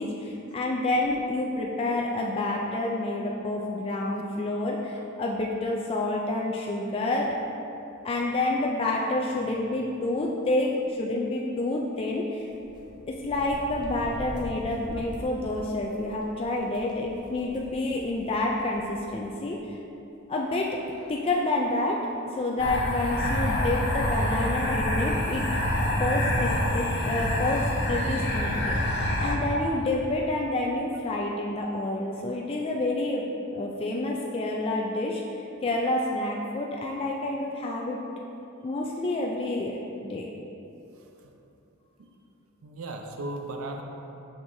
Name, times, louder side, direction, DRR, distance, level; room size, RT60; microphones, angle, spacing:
voice 1, 0.0-7.4 8.0-12.5 13.1-19.8 20.3-20.8 21.1-22.0 22.4-25.4 26.0-33.2 33.5-35.2 35.6-38.0 38.6-39.8 40.1-40.3, left 2 dB, 25° left, -1 dB, 0.3 m, -28 dB
sound 1, 12.4-19.1 19.5-19.6 20.7-20.8 21.0-21.3, equal, 20° right, 0.7 m, -43 dB
sound 2, 22.6-29.4, left 1 dB, 50° left, 0.7 m, -26 dB
voice 2, 41.0-41.3 42.0-42.1 42.6-43.8, right 2 dB, 80° right, 2 dB, 0.5 m, -37 dB
6.3 x 6.0 x 2.6 m, 2.9 s
head